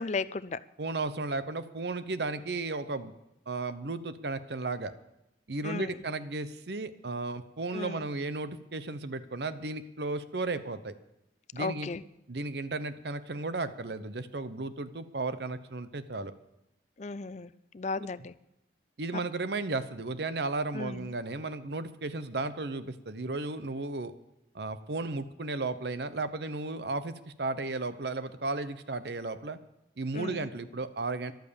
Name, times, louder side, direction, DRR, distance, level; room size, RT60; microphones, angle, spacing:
voice 1, 0.0-0.6 5.6-6.0 7.7-8.1 11.6-12.0 17.0-18.3 19.1-19.2 20.7-21.1 30.1-30.5, left 4 dB, 40° left, 17 dB, 0.4 m, -35 dB
voice 2, 0.8-3.1 3.5-4.9 5.5-10.9 11.5-11.9 12.3-16.3 19.0-24.1 24.5-29.6 30.0-31.3, right 3 dB, 65° right, 13 dB, 0.8 m, -34 dB
14.0 x 12.0 x 7.0 m, 0.89 s
head